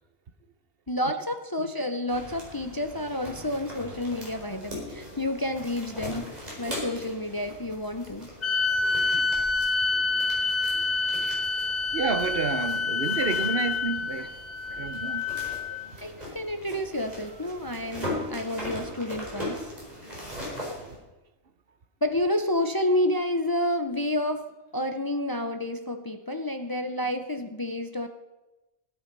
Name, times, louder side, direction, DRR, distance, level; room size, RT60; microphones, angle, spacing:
voice 1, 0.9-8.3 16.0-19.7 22.0-24.5 24.7-28.1, left 1 dB, 25° left, 0.6 m, -29 dB
sound 1, 2.1-21.0, left 1 dB, 35° right, 4.8 m, -40 dB
sound 2, 8.4-15.9, left 4 dB, 55° left, 1.3 m, -27 dB
voice 2, 11.9-14.3 14.8-15.3 20.8-21.0, right 5 dB, 55° right, 1.1 m, -30 dB
17.0 x 8.8 x 5.4 m
omnidirectional pair, 1.2 m